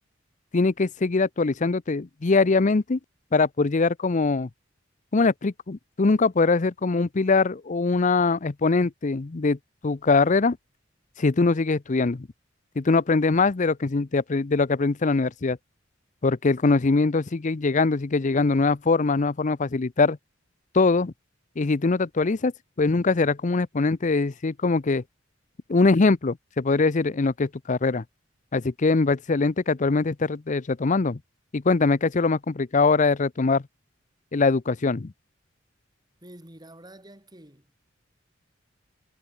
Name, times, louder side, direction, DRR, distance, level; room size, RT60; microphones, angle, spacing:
voice 1, 0.5-3.0 3.3-4.5 5.1-9.6 9.8-10.6 11.2-12.3 12.8-15.6 16.2-20.2 20.7-21.1 21.6-22.5 22.8-25.0 25.7-28.0 28.5-31.2 31.5-33.6 34.3-35.1, left 3 dB, 40° left, 0.6 m, -22 dB
voice 2, 36.2-37.7, right 1 dB, 20° right, 6.6 m, -48 dB
head